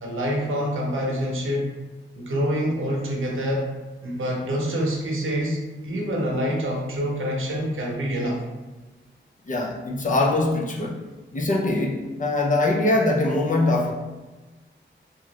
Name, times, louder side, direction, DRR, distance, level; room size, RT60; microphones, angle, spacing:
voice 1, 0.0-1.7 2.2-3.7 4.0-5.6 5.8-8.4, equal, 80° right, -2 dB, 0.8 m, -26 dB
voice 2, 9.5-11.0 11.3-13.9, left 2 dB, 40° left, -1 dB, 0.5 m, -22 dB
2.8 x 2.4 x 3.0 m, 1.2 s
wide cardioid pair, 115°, 21 cm